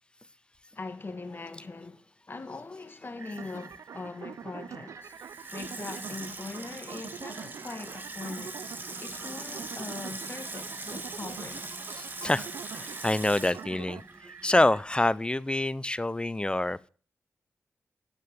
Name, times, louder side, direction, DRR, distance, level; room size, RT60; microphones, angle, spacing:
voice 1, 0.8-5.2 5.5-8.6 9.0-11.6, left 3 dB, 45° left, 1.8 m, -41 dB
sound 1, 3.2-14.8, right 5 dB, 60° right, 1.0 m, -51 dB
sound 2, 3.4-14.0, right 8 dB, 75° right, 0.6 m, -45 dB
Water tap faucet / Sink (filling or washing), 5.0-14.7 15.0-15.1, right 2 dB, 40° right, 2.1 m, -41 dB
voice 2, 12.0-14.0 14.4-16.9, left 1 dB, 20° left, 0.6 m, -27 dB
9.9 x 8.7 x 6.9 m
supercardioid pair, 45°, 5 cm